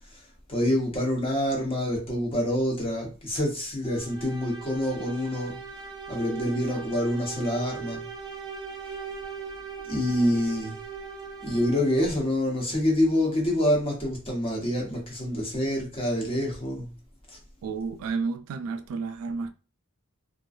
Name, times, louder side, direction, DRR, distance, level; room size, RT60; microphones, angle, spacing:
voice 1, 0.5-5.6 6.1-8.0 9.9-10.8 11.4-16.9 17.3-17.4, left 1 dB, 25° left, 0.9 m, -26 dB
sound 1, 3.8-12.2, right 6 dB, 20° right, 0.4 m, -39 dB
voice 2, 17.6-19.5, right 4 dB, 90° right, 0.3 m, -31 dB
2.5 x 2.2 x 2.4 m
head